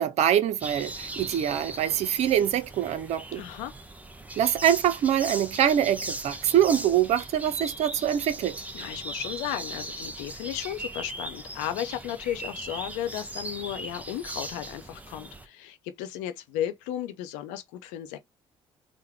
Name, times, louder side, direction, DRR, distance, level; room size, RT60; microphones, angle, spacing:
voice 1, 0.0-3.4 4.4-8.6, right 10 dB, 60° right, 0.6 m, -24 dB
sound 1, 0.6-15.5, right 2 dB, 10° right, 0.8 m, -39 dB
voice 2, 3.3-3.7 8.7-18.2, left 11 dB, 75° left, 0.7 m, -34 dB
3.6 x 2.1 x 3.5 m
hypercardioid pair, 55°, 13 cm